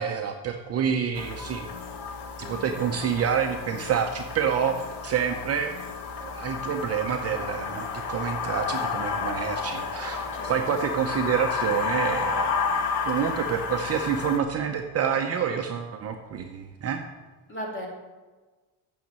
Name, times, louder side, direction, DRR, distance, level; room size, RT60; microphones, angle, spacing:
voice 1, 0.0-1.7 2.4-5.7 6.2-12.5 13.1-17.0, right 7 dB, 35° right, 4 dB, 0.6 m, -28 dB
sound 1, 1.1-14.4, left 5 dB, 65° left, 1.3 m, -31 dB
voice 2, 2.4-3.0 10.3-11.0 13.2-13.4 17.5-17.9, equal, 25° left, -2 dB, 2.6 m, -39 dB
8.9 x 6.4 x 7.5 m, 1.3 s
cardioid pair, 160°, 43 cm